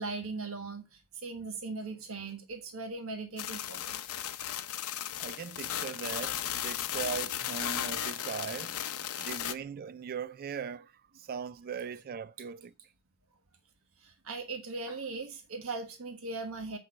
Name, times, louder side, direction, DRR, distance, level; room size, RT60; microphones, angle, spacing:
voice 1, 0.0-4.0 9.2-9.3 14.0-16.8, right 3 dB, 70° right, 1.4 m, -39 dB
sound 1, 3.4-9.5, left 10 dB, 80° left, 0.7 m, -35 dB
voice 2, 5.2-8.8 9.2-10.9 11.2-12.7, right 6 dB, 45° right, 0.3 m, -39 dB
8.0 x 5.8 x 4.3 m
head